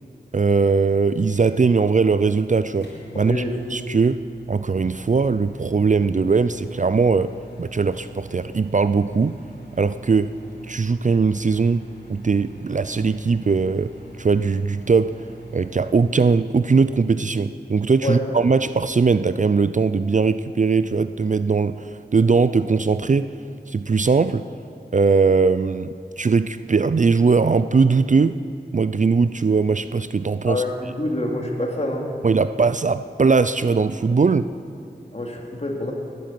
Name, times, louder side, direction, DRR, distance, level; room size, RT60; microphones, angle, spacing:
voice 1, 0.3-2.9 3.2-3.4 3.7-4.2 4.5-7.3 7.6-9.4 9.8-10.3 10.7-11.8 12.1-13.9 14.2-15.1 15.5-23.3 23.7-24.4 24.9-28.4 28.7-30.6 32.2-34.5, right 4 dB, 45° right, 13 dB, 0.4 m, -20 dB
Microwave oven, 1.3-16.3, right 3 dB, 70° left, 4.0 m, -42 dB
voice 2, 3.1-3.5 18.0-18.2 30.5-32.1 35.1-35.9, left 1 dB, 35° left, 0 dB, 2.8 m, -26 dB
20.0 x 9.4 x 7.5 m, 2.5 s
wide cardioid pair, 55°, 18 cm